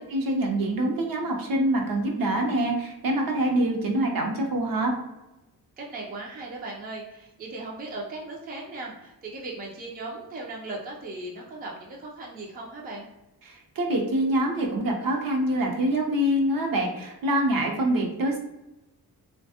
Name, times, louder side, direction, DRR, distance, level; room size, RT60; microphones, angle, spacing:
voice 1, 0.1-4.9 13.4-18.4, right 1 dB, 60° right, 1 dB, 0.7 m, -25 dB
voice 2, 5.8-13.1, right 2 dB, 25° right, -1 dB, 0.4 m, -37 dB
3.3 x 2.2 x 2.7 m, 0.96 s
wide cardioid pair, 165°, 38 cm